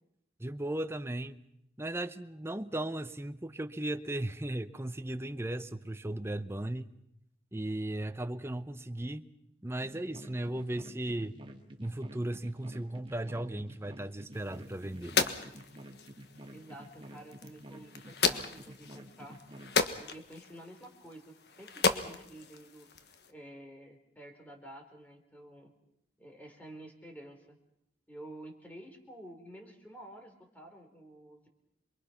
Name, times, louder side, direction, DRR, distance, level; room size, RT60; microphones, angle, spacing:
voice 1, 0.4-1.4 1.8-6.9 7.5-9.3 9.6-11.4 11.8-15.2, right 1 dB, 15° right, 11 dB, 0.8 m, -36 dB
sound 1, 9.8-19.7, right 1 dB, 30° right, 2.1 m, -50 dB
sound 2, 14.3-23.3, left 5 dB, 65° left, 1.5 m, -35 dB
voice 2, 16.5-19.4 20.0-22.9 23.3-25.7 26.2-27.6 28.1-31.5, right 1 dB, 10° left, 4 dB, 3.7 m, -50 dB
27.5 x 22.5 x 5.8 m, 0.78 s
head